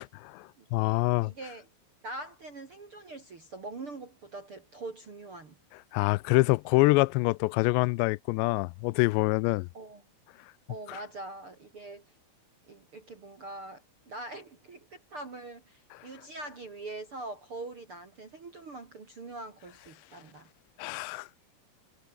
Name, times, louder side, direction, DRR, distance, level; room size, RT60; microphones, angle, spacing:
voice 1, 0.0-1.3 5.9-9.7 10.9-11.0 20.8-21.3, left 23 dB, 85° left, 2.8 m, -26 dB
voice 2, 1.2-1.7 2.0-5.6 9.7-10.0 10.7-12.0 12.7-20.5, right 2 dB, 35° right, 2.8 m, -43 dB
omnidirectional pair, 5.0 m